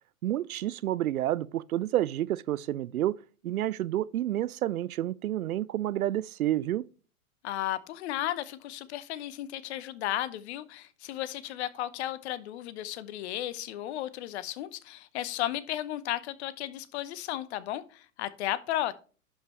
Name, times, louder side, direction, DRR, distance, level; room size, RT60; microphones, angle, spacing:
voice 1, 0.2-3.2 3.4-6.8, right 13 dB, 75° right, 0.5 m, -29 dB
voice 2, 7.4-18.9, left 13 dB, 50° left, 0.9 m, -34 dB
11.0 x 5.3 x 3.0 m
hypercardioid pair, 110°, 44 cm